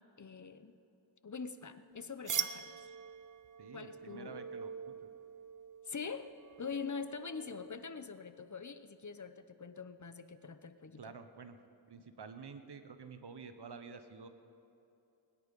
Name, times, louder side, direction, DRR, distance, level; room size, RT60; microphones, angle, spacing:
voice 1, 0.2-0.8 1.2-2.7 3.7-4.4 5.9-6.3 6.6-11.1, left 5 dB, 45° left, 11 dB, 0.8 m, -44 dB
sound 1, 2.3-7.8, right 7 dB, 45° right, 0.7 m, -43 dB
voice 2, 3.6-5.1 11.0-11.6 11.9-14.3, right 5 dB, 65° right, 9 dB, 1.1 m, -50 dB
21.0 x 10.5 x 5.3 m, 2.8 s
cardioid pair, 50°, 43 cm